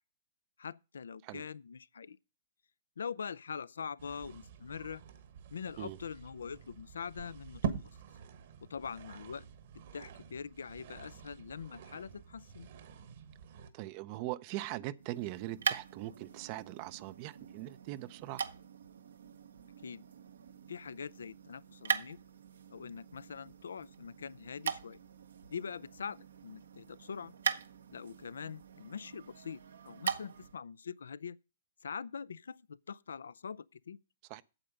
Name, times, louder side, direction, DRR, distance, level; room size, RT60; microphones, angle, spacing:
voice 1, 0.6-2.2 3.0-5.0 5.5-7.6 8.6-9.4 9.7-12.7 19.8-20.0 20.7-22.2 22.7-25.0 25.5-27.3 27.9-31.4 31.8-34.0, left 6 dB, 75° left, 0.4 m, -43 dB
sound 1, 4.0-13.7, right 7 dB, 60° right, 1.4 m, -45 dB
voice 2, 13.7-18.4 34.3-34.4, right 16 dB, 40° right, 0.5 m, -41 dB
sound 2, 15.0-30.6, right 7 dB, 75° right, 0.9 m, -41 dB
8.9 x 7.6 x 5.2 m
hypercardioid pair, 120°, 0 cm